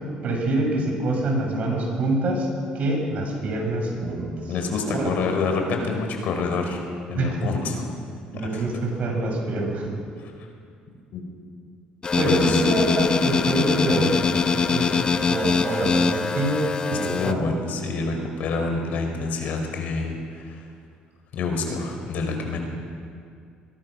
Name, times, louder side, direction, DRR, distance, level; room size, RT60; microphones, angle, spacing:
voice 1, 0.2-2.5 2.7-4.3 4.9-5.1 7.1-7.3 8.3-10.0 12.2-17.5, right 2 dB, 55° right, 1 dB, 6.8 m, -25 dB
voice 2, 4.5-6.8 7.1-7.9 8.5-8.7 10.2-10.3 11.1-11.2 12.2-12.6 17.0-20.6 21.3-22.6, left 4 dB, 65° left, 3 dB, 4.8 m, -27 dB
sound 1, 12.0-17.3, left 5 dB, 30° left, 1.0 m, -23 dB
23.5 x 21.5 x 6.5 m, 2.3 s
cardioid pair, 105°, 3 cm